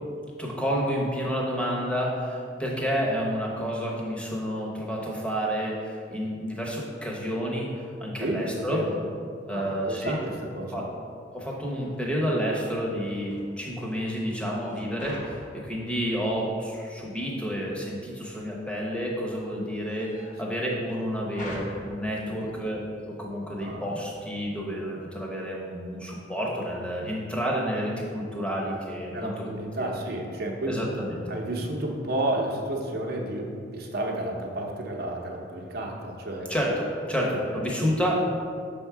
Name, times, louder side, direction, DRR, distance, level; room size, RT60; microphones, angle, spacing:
voice 1, 0.4-7.7 8.0-8.8 9.5-10.2 10.7-10.9 11.3-29.5 29.8-30.0 30.7-31.2 36.5-38.2, equal, 5° left, -3 dB, 0.9 m, -30 dB
voice 2, 8.2-9.0 9.5-10.9 22.2-22.5 23.6-24.0 29.1-30.8 31.3-36.5, right 1 dB, 55° right, 1 dB, 0.8 m, -31 dB
sound 1, 11.3-24.4, left 1 dB, 45° left, 1.0 m, -48 dB
6.3 x 3.6 x 4.6 m, 2.3 s
head